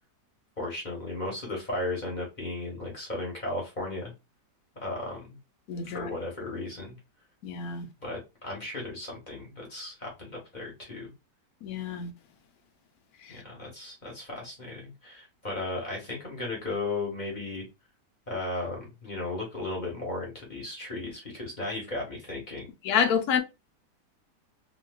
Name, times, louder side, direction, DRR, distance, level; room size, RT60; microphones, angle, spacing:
voice 1, 0.6-4.1 4.8-5.4 5.8-7.0 8.0-11.1 13.3-17.6 18.3-22.6, left 2 dB, 30° left, 1.0 m, -35 dB
voice 2, 5.7-6.1 7.4-7.9 11.6-12.1 13.2-13.4 22.8-23.4, left 7 dB, 70° left, 1.0 m, -28 dB
3.1 x 2.8 x 2.2 m
omnidirectional pair, 1.9 m